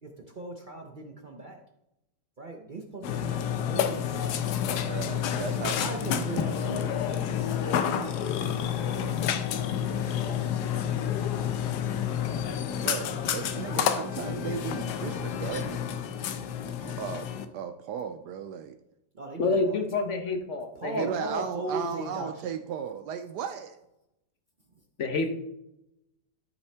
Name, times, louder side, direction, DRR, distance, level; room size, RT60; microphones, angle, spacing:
voice 1, 0.0-1.6 2.4-4.8 5.1-11.2 19.1-20.2 20.7-22.3 24.7-24.8, right 2 dB, 50° right, 3 dB, 0.5 m, -39 dB
Burping eructation, 3.0-17.5, left 9 dB, 75° left, 1.2 m, -29 dB
voice 2, 4.8-6.6 12.8-15.9 16.8-17.3 17.5-18.8 21.0-23.8, right 7 dB, 75° right, 8 dB, 1.1 m, -36 dB
voice 3, 19.4-21.1 25.0-25.3, left 3 dB, 50° left, 5 dB, 1.1 m, -28 dB
13.0 x 5.5 x 3.4 m, 0.86 s
omnidirectional pair, 1.9 m